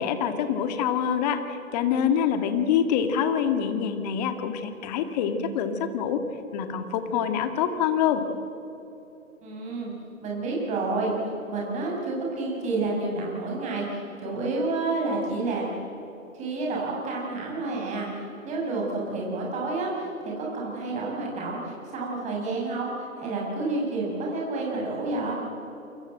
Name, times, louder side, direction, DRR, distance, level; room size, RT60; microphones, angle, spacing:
voice 1, 0.0-6.2 6.5-8.3, left 8 dB, 30° left, 8 dB, 2.3 m, -25 dB
voice 2, 9.4-9.9 10.2-11.1 11.5-15.7 16.3-20.1 20.4-25.3, right 3 dB, 15° right, -3 dB, 7.0 m, -29 dB
28.5 x 24.0 x 7.9 m, 3.0 s
hypercardioid pair, 140°, 41 cm